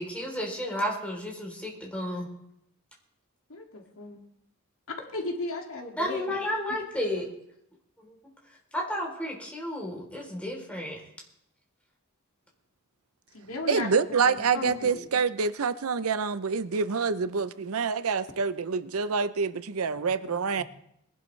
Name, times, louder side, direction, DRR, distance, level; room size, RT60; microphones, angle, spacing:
voice 1, 0.0-2.3 6.0-7.3 8.7-11.0 20.6-20.7, left 1 dB, 5° left, 3.4 m, -32 dB
voice 2, 3.5-4.2 5.1-6.4 13.3-13.9 14.2-15.0, left 2 dB, 75° left, 2.2 m, -35 dB
voice 3, 13.7-20.6, right 5 dB, 85° right, 0.6 m, -27 dB
21.5 x 11.5 x 3.3 m
head